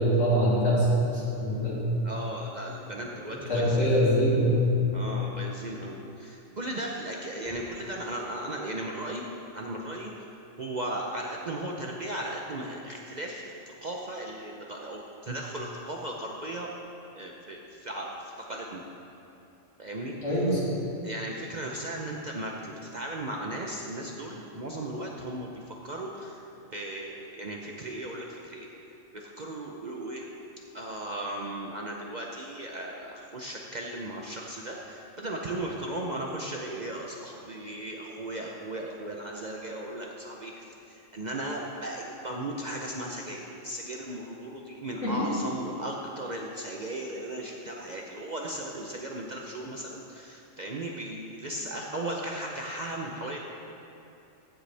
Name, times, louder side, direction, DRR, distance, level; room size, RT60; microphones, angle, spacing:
voice 1, 0.0-1.8 3.5-4.8 20.2-20.8 45.0-45.1, equal, 65° left, -9 dB, 3.3 m, -24 dB
voice 2, 2.0-4.0 4.9-9.2 9.5-10.3 10.6-16.7 17.1-18.8 19.8-20.2 21.0-26.4 26.7-28.7 29.1-30.2 30.7-53.4, right 1 dB, 45° right, -1 dB, 0.7 m, -36 dB
15.0 x 7.8 x 3.3 m, 2.8 s
omnidirectional pair, 1.3 m